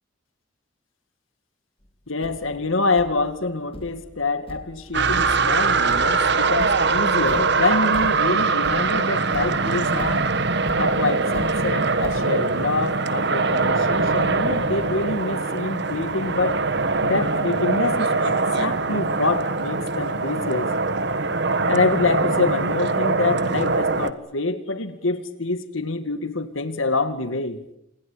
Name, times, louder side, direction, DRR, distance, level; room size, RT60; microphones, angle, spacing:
Thump thud, 1.8-1.9 2.2-12.3, equal, 30° left, 2.0 m, -42 dB
voice 1, 2.1-10.3 10.8-16.6 17.0-20.7 21.7-27.6, left 3 dB, 90° left, 10 dB, 2.2 m, -26 dB
sound 1, 4.9-24.1, right 4 dB, 60° right, 1.5 m, -22 dB
28.5 x 21.0 x 8.7 m, 0.76 s
head